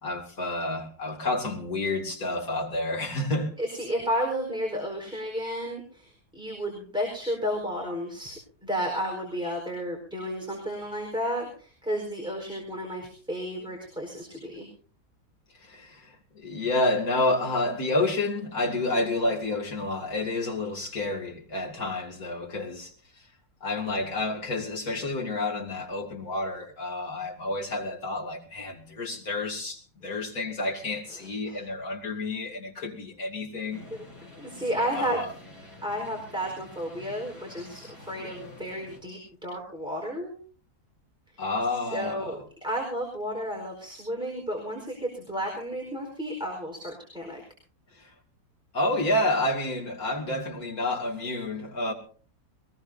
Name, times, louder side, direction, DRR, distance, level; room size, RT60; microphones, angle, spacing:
voice 1, 0.0-3.5 15.5-23.3 23.6-33.9 35.0-35.3 38.3-38.5 41.4-42.4 47.9-48.1 48.7-51.9, left 2 dB, 65° left, 3.3 m, -29 dB
voice 2, 3.6-8.3 8.6-14.7 31.1-31.6 34.4-35.2 35.8-40.3 41.3-41.4 41.9-47.4, equal, 5° right, 4.5 m, -32 dB
sound 1, 33.7-39.0, left 2 dB, 40° left, 7.0 m, -48 dB
22.5 x 19.5 x 2.7 m
omnidirectional pair, 1.7 m